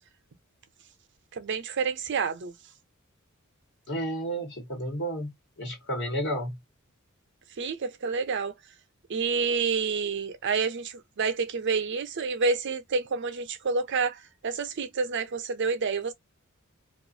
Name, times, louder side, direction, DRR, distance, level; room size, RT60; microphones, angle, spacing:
voice 1, 1.3-2.5 7.6-8.5 9.1-16.1, right 5 dB, 60° right, 0.6 m, -28 dB
voice 2, 3.9-5.3 5.6-6.6, right 1 dB, 60° left, 1.2 m, -31 dB
2.5 x 2.4 x 2.6 m
head